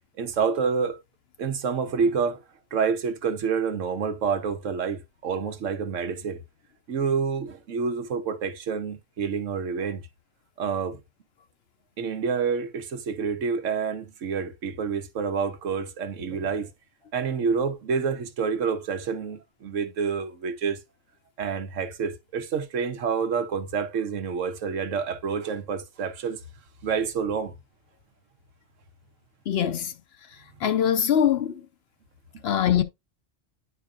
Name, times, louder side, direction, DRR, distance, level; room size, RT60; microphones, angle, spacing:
voice 1, 0.2-1.0 1.4-2.4 2.7-6.4 6.9-10.0 10.6-11.0 12.0-16.7 17.1-20.8 21.4-26.4 26.8-27.5 32.3-32.4, right 6 dB, 80° right, 1.2 m, -28 dB
voice 2, 29.5-29.9 30.6-31.6 32.4-32.8, left 9 dB, 60° left, 0.8 m, -22 dB
10.0 x 4.4 x 2.4 m
omnidirectional pair, 1.3 m